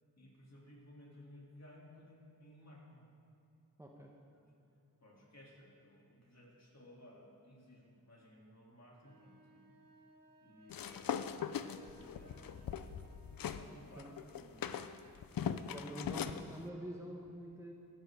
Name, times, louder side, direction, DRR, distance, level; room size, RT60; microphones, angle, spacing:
voice 1, 0.2-3.0 4.3-4.4 5.0-9.7 10.4-12.7 13.5-14.7, left 1 dB, 45° left, -3 dB, 3.0 m, -58 dB
voice 2, 3.8-4.2 14.0-14.1 15.4-17.7, right 1 dB, 10° right, 0 dB, 1.1 m, -47 dB
sound 1, 9.0-13.9, right 1 dB, 65° right, 1.4 m, -65 dB
sound 2, 10.7-13.6 14.0-16.4, left 8 dB, 65° left, 0.5 m, -40 dB
sound 3, 10.9-13.7, equal, 30° right, 2.6 m, -65 dB
16.5 x 9.6 x 3.7 m, 2.7 s
cardioid pair, 60°, 37 cm